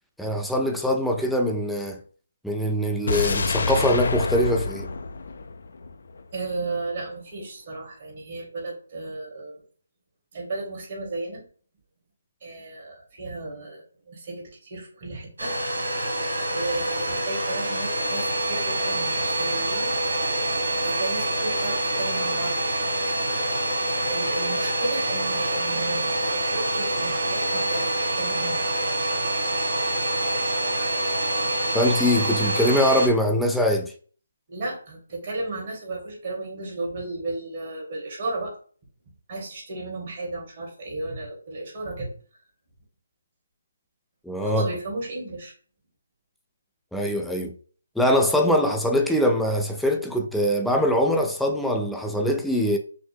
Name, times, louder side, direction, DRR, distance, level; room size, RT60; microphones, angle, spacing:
voice 1, 0.2-2.0 2.4-4.9 31.7-33.9 44.3-44.7 46.9-47.5 48.0-52.8, equal, ahead, 0.3 m, -23 dB
sound 1, 3.1-6.2 6.5-6.6, left 3 dB, 60° left, 0.5 m, -27 dB
voice 2, 6.3-9.6 10.3-11.4 12.4-15.5 16.5-19.9 20.5-22.7 24.1-28.8 34.5-38.6 39.3-42.1 44.4-45.5, right 2 dB, 35° right, 1.8 m, -34 dB
Domestic sounds home sounds, 15.4-33.1, right 1 dB, 75° right, 1.7 m, -26 dB
5.8 x 2.1 x 3.4 m
hypercardioid pair, 165°, 0 cm